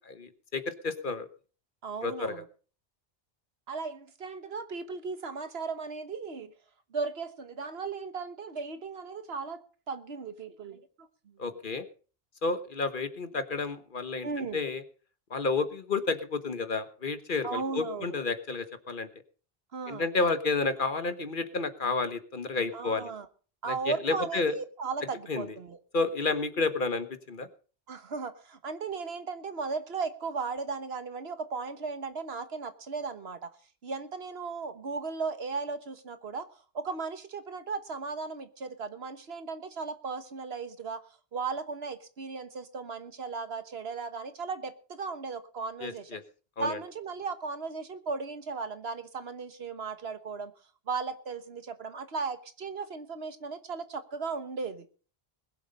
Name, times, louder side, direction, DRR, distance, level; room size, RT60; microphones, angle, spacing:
voice 1, 0.1-1.3 2.0-2.4 11.4-11.8 12.4-14.8 15.3-19.1 19.9-23.1 23.7-24.5 25.3-25.5 25.9-27.5 45.8-46.2 46.6-46.8, left 3 dB, 55° left, 11 dB, 1.3 m, -31 dB
voice 2, 1.8-2.4 3.7-6.5 6.9-11.4 14.2-14.6 17.4-18.2 19.7-20.1 22.7-23.3 23.6-25.8 27.9-33.5 33.8-36.5 36.7-41.0 41.3-46.2 46.6-50.5 50.9-54.9, right 4 dB, 80° right, 10 dB, 1.5 m, -36 dB
21.0 x 7.9 x 5.4 m, 0.40 s
omnidirectional pair, 1.0 m